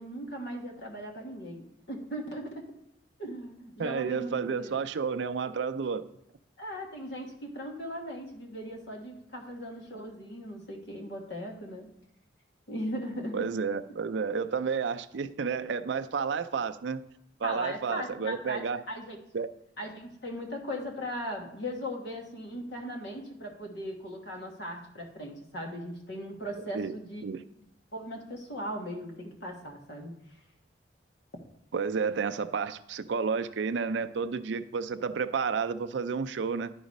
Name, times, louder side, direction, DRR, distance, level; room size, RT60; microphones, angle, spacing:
voice 1, 0.0-2.6 3.2-4.8 6.6-11.9 12.7-13.5 17.4-19.2 19.8-27.2 27.9-30.1, equal, 70° left, 1 dB, 1.4 m, -38 dB
voice 2, 3.8-6.1 13.3-17.0 17.4-18.8 19.3-19.5 26.7-26.9 27.2-27.4 31.7-36.7, right 5 dB, 75° right, 10 dB, 0.4 m, -31 dB
11.0 x 4.0 x 5.3 m, 0.77 s
head